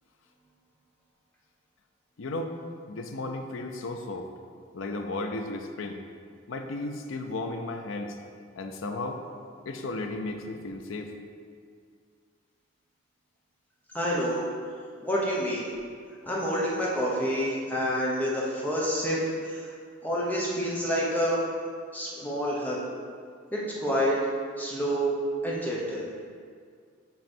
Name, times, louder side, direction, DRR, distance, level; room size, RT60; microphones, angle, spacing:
voice 1, 2.2-2.6 2.9-4.3 4.7-6.0 6.5-8.2 8.6-9.2 9.7-11.1, left 2 dB, 85° left, 5 dB, 0.5 m, -34 dB
voice 2, 13.9-14.4 15.0-15.7 16.2-19.2 19.4-19.7 20.0-21.4 21.9-22.8 23.5-24.2 24.6-25.1 25.4-26.1, equal, 10° left, -5 dB, 1.0 m, -28 dB
7.7 x 3.1 x 4.5 m, 2.1 s
head